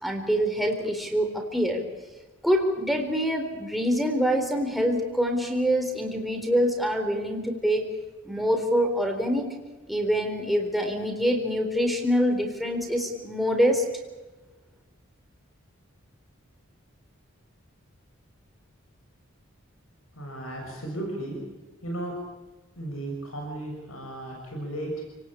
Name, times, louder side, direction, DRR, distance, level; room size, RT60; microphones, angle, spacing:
voice 1, 0.0-1.8 2.4-7.9 8.2-9.6 9.9-13.9, equal, ahead, 2 dB, 3.9 m, -25 dB
voice 2, 20.2-21.4 21.8-22.1 22.8-25.0, right 1 dB, 85° left, 1 dB, 6.4 m, -35 dB
30.0 x 18.5 x 8.6 m, 1.2 s
head